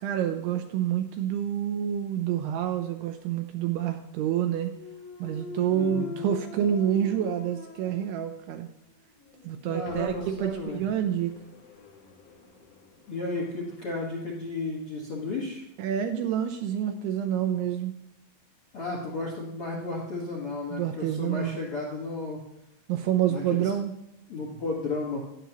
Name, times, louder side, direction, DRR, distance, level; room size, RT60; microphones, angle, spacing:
voice 1, 0.0-4.7 5.2-8.7 9.4-11.4 15.8-18.0 20.7-21.7 22.9-23.9, right 10 dB, 80° right, 6 dB, 2.4 m, -28 dB
Thump thud, 4.7-8.7 9.2-13.9, left 4 dB, 75° left, 3.9 m, -44 dB
voice 2, 5.7-6.2 9.7-10.8 13.1-15.6 18.7-22.4 23.3-23.7 24.3-25.2, left 3 dB, 55° left, -3 dB, 1.6 m, -33 dB
13.0 x 10.0 x 3.0 m, 0.87 s
omnidirectional pair, 5.1 m